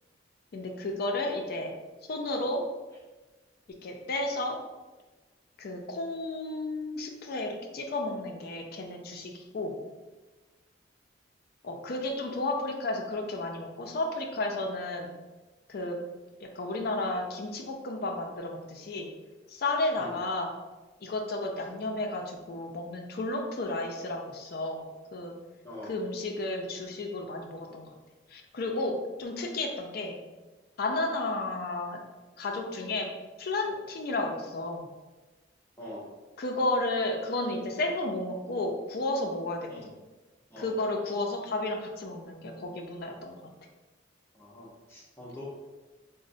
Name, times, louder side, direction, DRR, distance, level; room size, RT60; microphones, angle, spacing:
voice 1, 0.5-1.7 2.1-2.6 3.8-4.6 5.6-9.7 11.6-15.1 15.7-16.0 16.4-19.1 19.5-20.5 21.0-25.3 25.9-27.9 28.3-30.2 30.8-32.0 32.4-33.1 33.4-34.9 36.4-39.7 40.6-43.4, left 2 dB, 50° left, 3 dB, 0.4 m, -32 dB
voice 2, 35.8-36.1 39.7-39.9 40.5-40.7 44.3-45.4, left 1 dB, 10° left, -6 dB, 0.7 m, -44 dB
3.9 x 2.0 x 2.6 m, 1.2 s
head